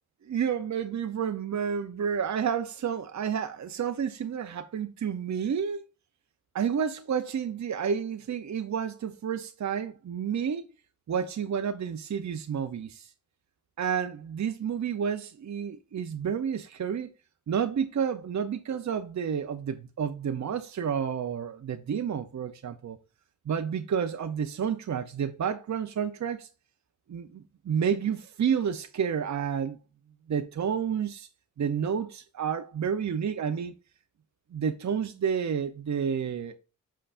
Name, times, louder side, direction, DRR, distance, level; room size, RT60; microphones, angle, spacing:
voice 1, 0.3-5.8 6.5-10.6 11.1-13.1 13.8-17.1 17.5-23.0 23.5-26.5 27.1-29.8 30.3-31.3 31.6-33.7 34.5-36.5, right 7 dB, 60° right, 0.7 m, -30 dB
7.5 x 5.6 x 2.5 m
wide cardioid pair, 95°, 32 cm